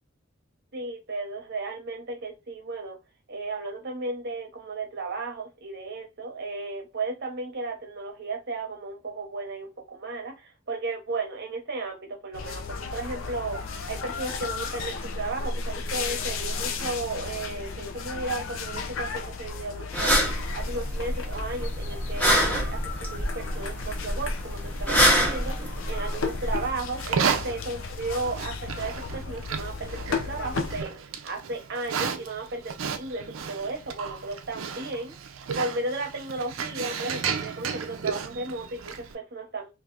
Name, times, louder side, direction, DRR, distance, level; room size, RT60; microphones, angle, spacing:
voice 1, 0.7-3.0 3.3-13.6 13.9-20.2 20.5-30.9 31.2-35.1 35.6-39.7, right 3 dB, 55° right, 0.9 m, -34 dB
sound 1, 12.3-30.8, left 4 dB, 80° left, 0.5 m, -34 dB
sound 2, 19.9-26.7, equal, 10° left, 0.8 m, -26 dB
Livestock farm animals working animals, 26.9-39.1, right 6 dB, 85° right, 0.5 m, -33 dB
3.3 x 2.6 x 2.4 m
head